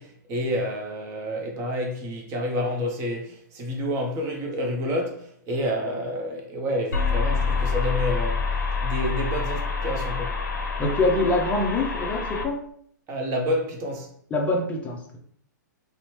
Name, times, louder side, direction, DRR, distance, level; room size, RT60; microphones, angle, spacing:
voice 1, 0.0-8.5 8.8-10.4 13.1-14.1, equal, 30° right, 0.7 m, -29 dB
sound 1, 6.9-12.5, left 4 dB, 65° left, 0.6 m, -27 dB
voice 2, 10.8-12.6 14.3-15.2, left 2 dB, 15° left, 0.5 m, -24 dB
2.7 x 2.1 x 2.9 m
figure-of-eight pair, 115°, 10 cm